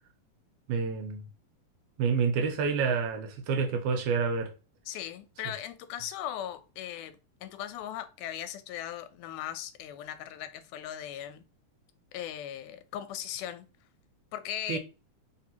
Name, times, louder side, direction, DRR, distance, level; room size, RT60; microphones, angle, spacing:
voice 1, 0.7-1.2 2.0-4.5 14.7-14.8, right 5 dB, 80° right, 2.1 m, -28 dB
voice 2, 4.9-11.4 12.1-13.7 14.3-14.8, left 11 dB, 85° left, 2.1 m, -38 dB
4.4 x 3.4 x 2.8 m
omnidirectional pair, 3.5 m